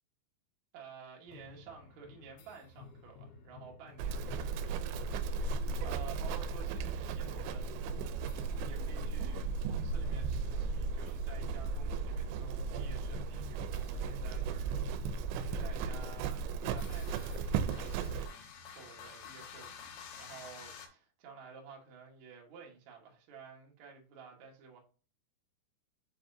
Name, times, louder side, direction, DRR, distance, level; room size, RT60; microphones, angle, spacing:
voice 1, 0.7-7.9 8.6-16.4 16.7-24.8, right 6 dB, 65° right, 1.8 m, -52 dB
sound 1, 1.3-20.9, left 5 dB, 80° left, 3.2 m, -53 dB
Livestock farm animals working animals, 4.0-18.3, right 4 dB, 85° right, 2.7 m, -35 dB
7.3 x 4.9 x 2.6 m
omnidirectional pair, 5.1 m